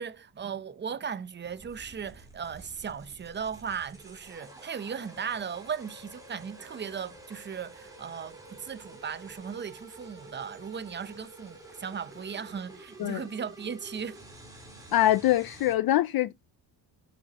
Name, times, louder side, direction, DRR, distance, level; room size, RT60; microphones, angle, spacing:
voice 1, 0.0-14.2, right 7 dB, 25° right, 0.6 m, -37 dB
sound 1, 1.4-15.7, right 2 dB, 10° right, 3.8 m, -49 dB
voice 2, 14.9-16.3, left 14 dB, 55° left, 0.5 m, -24 dB
10.0 x 7.3 x 2.8 m
wide cardioid pair, 170°, 44 cm